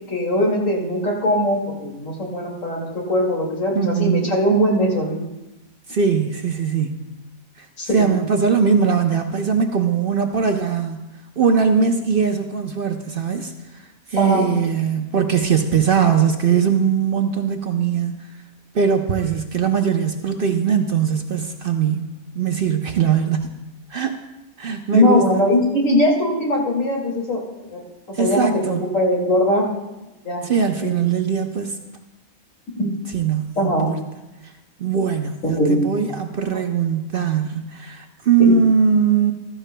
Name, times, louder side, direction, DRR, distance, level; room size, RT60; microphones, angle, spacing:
voice 1, 0.1-5.2 7.8-8.1 14.2-14.5 24.9-29.7 30.2-30.4 30.8-30.9 32.8-32.9 33.6-33.9 35.4-35.8 36.5-36.7 38.4-38.5, equal, 65° left, -2 dB, 2.6 m, -20 dB
voice 2, 3.7-4.3 5.9-7.0 7.6-7.7 7.9-11.0 11.4-18.3 18.7-22.0 22.3-23.5 23.9-24.2 24.6-25.2 28.1-28.8 30.4-31.7 33.1-34.0 34.8-39.3, right 6 dB, 55° right, 5 dB, 0.7 m, -20 dB
15.0 x 13.5 x 2.2 m, 0.99 s
omnidirectional pair, 1.5 m